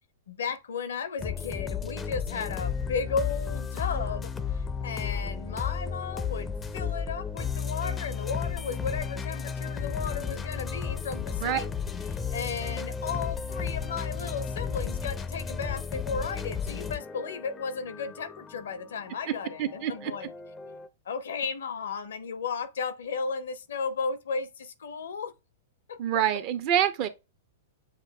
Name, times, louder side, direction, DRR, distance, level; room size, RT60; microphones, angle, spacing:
voice 1, 0.3-11.7 12.1-20.3 21.0-25.3 25.9-26.0, left 5 dB, 70° left, 0.6 m, -34 dB
sound 1, 1.2-20.9, left 6 dB, 15° left, 0.5 m, -34 dB
voice 2, 19.6-20.1 26.0-27.1, right 10 dB, 45° right, 0.6 m, -26 dB
7.3 x 2.5 x 2.2 m
figure-of-eight pair, 105°, 0 cm